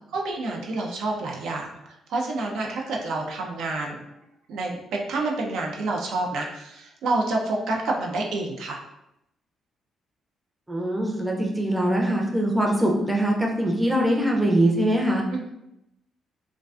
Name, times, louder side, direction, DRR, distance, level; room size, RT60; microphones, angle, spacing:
voice 1, 0.1-1.8 2.1-4.0 4.5-8.8 15.3-15.5, right 2 dB, 80° right, -1 dB, 0.4 m, -28 dB
voice 2, 10.7-15.2, right 1 dB, 10° right, -1 dB, 0.5 m, -22 dB
2.3 x 2.2 x 2.4 m, 0.85 s
cardioid pair, 90°, 0 cm